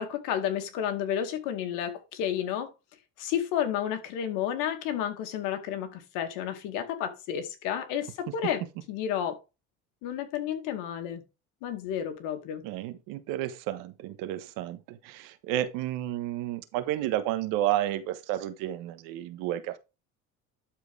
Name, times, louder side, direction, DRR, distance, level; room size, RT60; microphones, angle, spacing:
voice 1, 0.0-2.7 3.2-8.6 8.9-9.4 10.0-11.2 11.6-12.6, left 9 dB, 80° left, 2.3 m, -31 dB
voice 2, 12.6-19.8, right 13 dB, 80° right, 1.4 m, -31 dB
12.0 x 4.8 x 3.5 m
cardioid pair, 115°, 32 cm